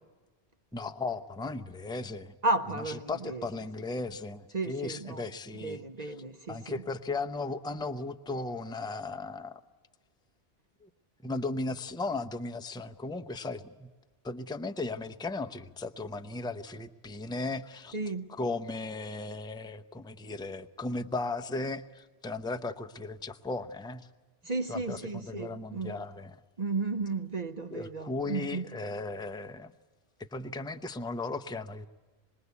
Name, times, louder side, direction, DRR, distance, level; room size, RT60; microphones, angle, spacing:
voice 1, 0.7-2.3 3.1-6.1 6.5-9.6 10.8-10.9 11.2-13.9 14.2-18.0 18.3-24.1 24.7-26.4 27.7-29.7 30.2-31.9, left 3 dB, 5° left, 0.6 m, -36 dB
voice 2, 2.4-3.4 4.5-5.2 5.6-6.8 17.9-18.3 24.4-26.0 26.6-28.7, right 3 dB, 40° right, 0.9 m, -33 dB
26.5 x 21.0 x 8.2 m
omnidirectional pair, 1.1 m